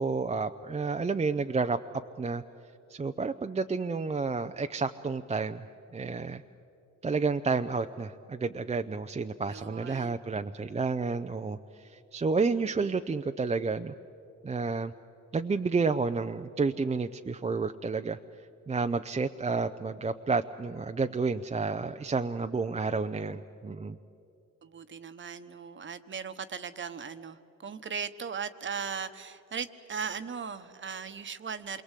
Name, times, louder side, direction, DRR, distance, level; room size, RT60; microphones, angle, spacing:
voice 1, 0.0-1.8 2.2-2.4 2.9-5.7 5.9-6.4 7.0-13.9 14.4-14.9 15.3-18.2 18.7-24.0, right 4 dB, 20° right, 7 dB, 0.6 m, -30 dB
voice 2, 9.5-10.2 24.6-31.8, right 6 dB, 40° right, 11 dB, 1.2 m, -38 dB
27.0 x 22.5 x 8.3 m, 2.7 s
cardioid pair, 90°, 30 cm